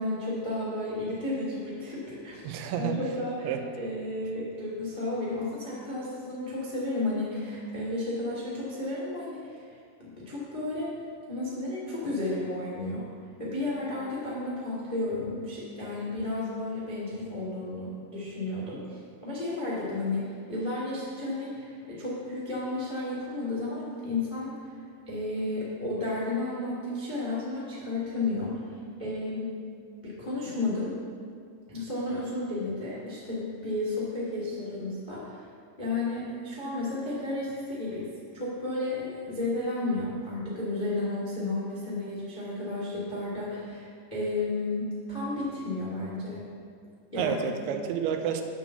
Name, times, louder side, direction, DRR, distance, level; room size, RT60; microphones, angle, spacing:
voice 1, 0.0-2.5 2.8-9.6 10.1-10.9 11.3-13.0 13.4-24.8 25.1-29.5 30.0-30.9 31.7-35.5 35.8-46.4 47.1-47.4, left 2 dB, 75° left, -6 dB, 0.4 m, -32 dB
voice 2, 2.4-3.0 3.4-3.6 47.2-48.4, right 8 dB, 80° right, 5 dB, 2.8 m, -30 dB
9.2 x 7.3 x 7.1 m, 2.2 s
omnidirectional pair, 5.9 m